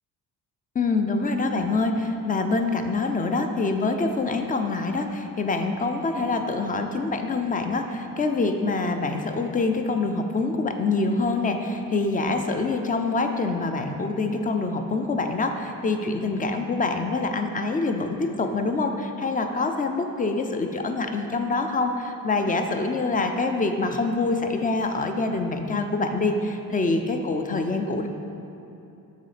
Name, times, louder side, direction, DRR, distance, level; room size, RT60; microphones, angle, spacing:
voice 1, 0.7-28.1, left 3 dB, 25° left, 6 dB, 0.5 m, -25 dB
6.5 x 4.1 x 5.0 m, 2.9 s
cardioid pair, 105°, 35 cm